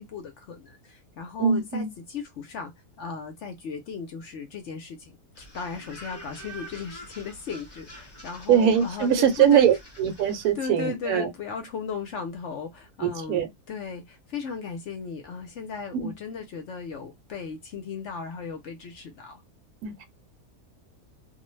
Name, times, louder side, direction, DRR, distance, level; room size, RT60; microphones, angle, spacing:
voice 1, 0.0-2.7 3.0-9.7 10.5-19.4, left 5 dB, 65° left, 0.8 m, -36 dB
voice 2, 1.4-1.9 8.5-11.3 13.0-13.5 15.9-16.1 19.8-20.0, right 8 dB, 75° right, 1.1 m, -22 dB
sound 1, 5.3-10.5, equal, 25° left, 1.0 m, -46 dB
2.5 x 2.1 x 3.0 m
omnidirectional pair, 1.5 m